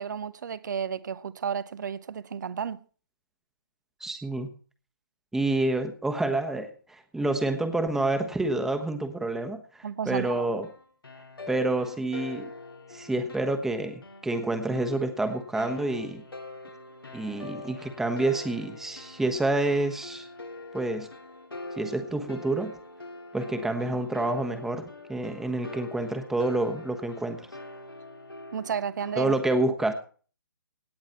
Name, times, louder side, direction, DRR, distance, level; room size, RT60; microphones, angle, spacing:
voice 1, 0.0-2.8 9.8-10.5 28.5-29.4, right 7 dB, 55° right, 0.9 m, -32 dB
voice 2, 4.0-4.5 5.3-10.7 11.5-12.5 12.9-16.2 17.1-20.3 20.7-21.1 21.8-22.8 23.3-27.5 29.2-29.9, right 2 dB, 5° right, 1.2 m, -28 dB
sound 1, 10.3-29.3, left 2 dB, 90° left, 2.2 m, -43 dB
17.5 x 9.0 x 4.4 m
figure-of-eight pair, 140°, 12 cm